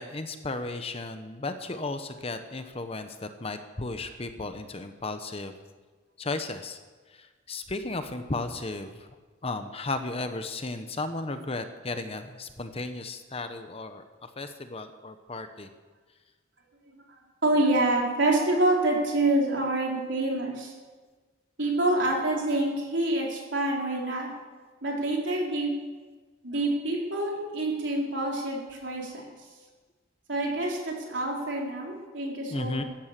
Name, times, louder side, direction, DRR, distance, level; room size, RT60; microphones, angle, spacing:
voice 1, 0.0-5.5 6.2-6.8 7.1-9.1 9.4-15.7 18.4-18.5 32.5-32.8, left 2 dB, 30° left, 8 dB, 1.0 m, -35 dB
voice 2, 17.4-20.7 21.6-24.3 24.8-25.8 26.4-29.1 30.3-32.8, right 2 dB, 70° right, -2 dB, 4.2 m, -27 dB
14.5 x 12.0 x 7.5 m, 1.4 s
head